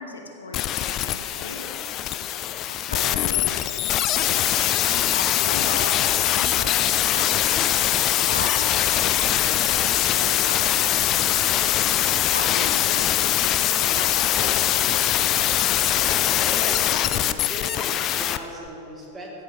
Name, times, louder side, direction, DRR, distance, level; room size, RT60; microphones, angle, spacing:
voice 1, 0.0-1.9 2.7-11.7 12.3-15.8, left 2 dB, 75° left, 2 dB, 0.8 m, -38 dB
sound 1, 0.5-18.4 18.7-18.8, left 12 dB, 35° left, 0.3 m, -22 dB
voice 2, 16.4-19.3, right 1 dB, 20° right, -2 dB, 1.8 m, -38 dB
14.5 x 5.8 x 3.3 m, 2.9 s
figure-of-eight pair, 90°, 0 cm